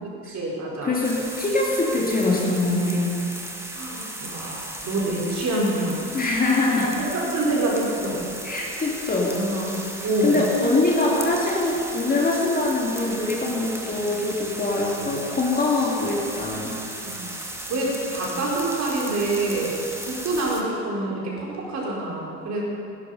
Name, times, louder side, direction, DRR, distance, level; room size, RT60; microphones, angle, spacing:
voice 1, 0.0-0.9 3.7-6.0 6.7-6.8 7.1-8.2 9.3-9.7 10.0-10.4 14.9-15.1 17.0-17.3 17.7-22.6, right 2 dB, 35° right, -3 dB, 4.3 m, -27 dB
voice 2, 0.8-3.2 6.1-7.1 8.4-9.4 10.2-16.8, left 2 dB, 20° left, -3 dB, 2.3 m, -23 dB
sound 1, 1.0-20.6, right 1 dB, 5° right, 1.6 m, -36 dB
16.5 x 11.5 x 5.2 m, 2.6 s
figure-of-eight pair, 75°, 47 cm